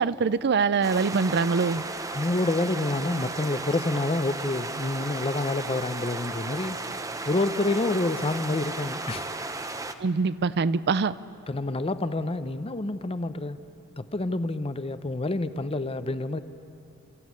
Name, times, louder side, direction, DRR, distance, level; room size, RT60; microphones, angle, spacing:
voice 1, 0.0-1.8 10.0-11.2, right 5 dB, 50° right, 16 dB, 0.5 m, -24 dB
sound 1, 0.8-9.9, right 3 dB, 15° right, 0.8 m, -34 dB
voice 2, 2.1-6.8 7.3-9.4 11.5-13.6 14.0-16.4, left 2 dB, 25° left, 12 dB, 0.7 m, -28 dB
30.0 x 13.5 x 9.6 m, 2.7 s
head